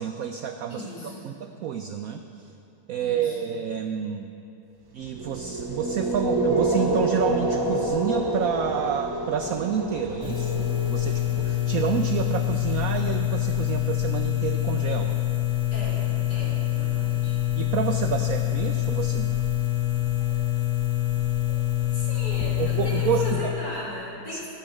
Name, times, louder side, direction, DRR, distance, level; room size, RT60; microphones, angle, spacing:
voice 1, 0.0-0.9 1.2-2.2 2.9-4.3 4.9-15.2 17.6-19.4 22.6-23.6 24.3-24.5, right 8 dB, 80° right, 6 dB, 0.7 m, -29 dB
voice 2, 0.7-1.3 3.0-3.5 15.7-17.4 20.3-20.4 21.9-24.5, equal, 60° left, -9 dB, 4.0 m, -38 dB
sound 1, 5.0-13.1, right 1 dB, 35° right, 0.3 m, -28 dB
sound 2, 10.2-23.4, left 15 dB, 5° right, 1.1 m, -25 dB
11.5 x 8.4 x 6.3 m, 2.7 s
omnidirectional pair, 2.0 m